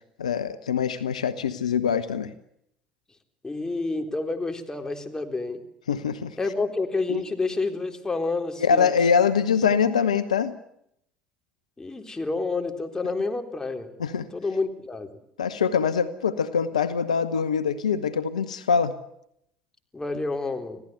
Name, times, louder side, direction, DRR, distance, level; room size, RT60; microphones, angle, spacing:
voice 1, 0.2-2.3 5.9-6.3 7.1-7.2 8.6-10.6 14.0-14.3 15.4-18.9, left 6 dB, 90° left, 12 dB, 0.9 m, -24 dB
voice 2, 3.4-5.6 6.4-8.9 11.8-13.9 14.3-15.1 19.9-20.8, left 3 dB, 15° left, 5 dB, 3.8 m, -29 dB
26.0 x 16.5 x 7.9 m, 0.73 s
hypercardioid pair, 65°, 4 cm